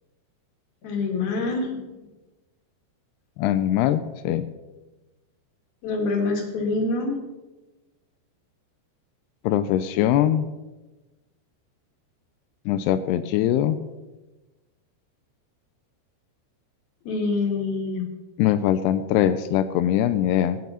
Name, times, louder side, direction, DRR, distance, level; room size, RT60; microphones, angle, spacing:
voice 1, 0.8-1.7 5.8-7.2 17.1-18.1, left 3 dB, 60° left, 3 dB, 3.6 m, -25 dB
voice 2, 3.4-4.4 9.4-10.5 12.7-13.8 18.4-20.6, left 11 dB, 85° left, 13 dB, 2.4 m, -22 dB
15.0 x 9.5 x 5.7 m, 1.1 s
omnidirectional pair, 5.1 m